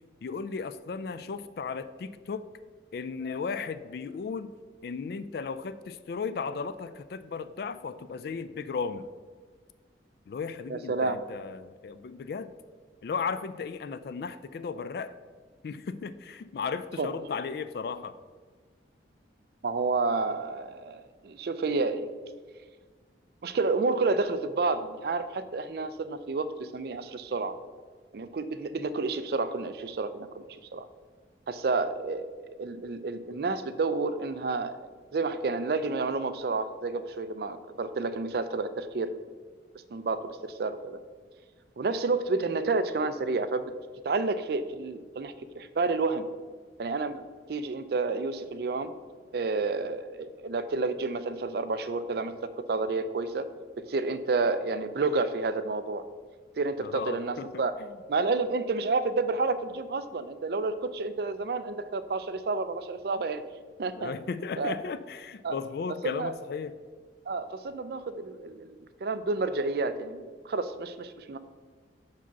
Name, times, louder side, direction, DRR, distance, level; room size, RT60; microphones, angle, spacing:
voice 1, 0.2-2.4 2.9-4.5 4.8-9.1 10.3-12.5 13.0-15.1 15.6-18.2 56.8-57.6 64.0-66.7, left 5 dB, 55° left, 13 dB, 0.3 m, -35 dB
voice 2, 10.7-11.2 17.0-17.1 19.6-22.1 23.4-27.5 28.1-30.4 30.7-30.9 31.5-34.8 35.1-39.1 39.9-41.0 41.8-43.7 44.0-46.3 46.8-47.2 47.5-48.9 49.3-53.4 53.9-56.0 56.6-57.7 58.1-63.4 63.8-64.1 64.6-64.7 65.4-65.6 66.0-66.3 67.3-71.4, right 3 dB, 55° right, 12 dB, 0.4 m, -30 dB
5.6 x 4.9 x 5.9 m, 1.5 s
head